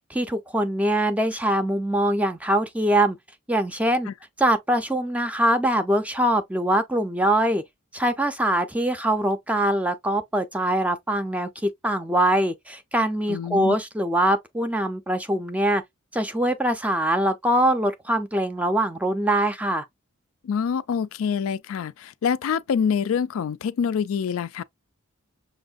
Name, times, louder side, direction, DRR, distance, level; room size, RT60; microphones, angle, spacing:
voice 1, 0.1-3.2 3.5-4.1 4.4-7.6 7.9-15.8 16.1-19.9, right 1 dB, 5° right, 0.5 m, -23 dB
voice 2, 13.3-13.8 20.4-24.6, left 7 dB, 75° left, 0.3 m, -26 dB
6.2 x 2.6 x 2.4 m
head